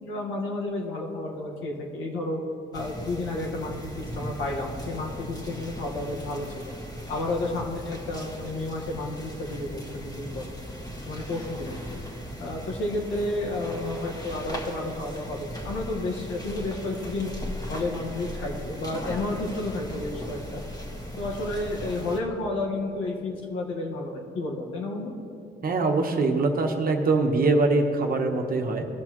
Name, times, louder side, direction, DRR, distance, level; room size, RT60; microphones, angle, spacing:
voice 1, 0.0-2.4 2.7-6.7 7.1-10.5 11.0-12.0 12.4-17.3 17.7-20.6 21.2-25.1, left 2 dB, 80° left, -1 dB, 1.5 m, -31 dB
sound 1, 2.7-22.2, equal, 20° left, 1.6 m, -38 dB
voice 2, 25.6-28.9, right 3 dB, 45° right, 3 dB, 1.1 m, -23 dB
17.0 x 6.3 x 3.0 m, 2.7 s
cardioid pair, 90°, 20 cm